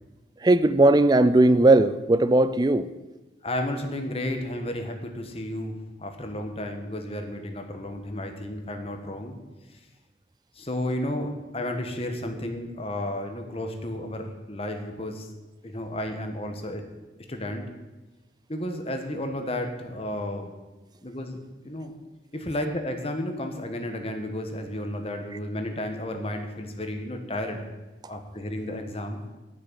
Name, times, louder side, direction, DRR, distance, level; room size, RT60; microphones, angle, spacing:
voice 1, 0.4-2.9, right 2 dB, 25° right, 13 dB, 0.4 m, -18 dB
voice 2, 3.4-9.4 10.5-15.3 15.6-16.8 17.3-17.6 18.5-20.5 21.0-21.4 21.6-21.9 22.3-27.7 28.1-29.2, left 1 dB, 35° left, 5 dB, 1.4 m, -32 dB
10.0 x 6.5 x 9.0 m, 1.1 s
head